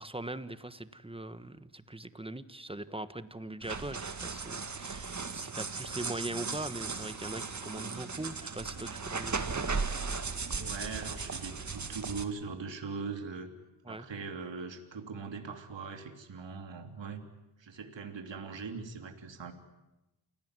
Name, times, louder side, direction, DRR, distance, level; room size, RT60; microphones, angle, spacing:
voice 1, 0.0-9.7 13.8-14.1, right 2 dB, 10° right, 12 dB, 1.4 m, -41 dB
sound 1, 3.6-12.2, right 4 dB, 35° right, 2.0 m, -37 dB
voice 2, 10.6-13.5 13.9-17.2 17.6-19.5, right 5 dB, 60° right, 5 dB, 3.1 m, -41 dB
28.0 x 18.0 x 9.7 m, 1.0 s
cardioid pair, 70°, 49 cm